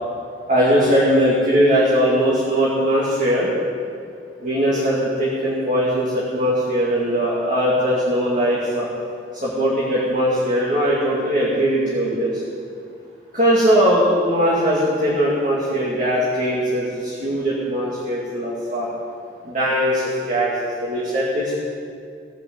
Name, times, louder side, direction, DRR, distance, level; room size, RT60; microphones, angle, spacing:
voice 1, 0.5-3.5 4.4-8.9 9.4-12.4 13.3-18.9 19.4-21.5, equal, 45° right, -6 dB, 2.5 m, -20 dB
17.5 x 7.8 x 8.5 m, 2.4 s
head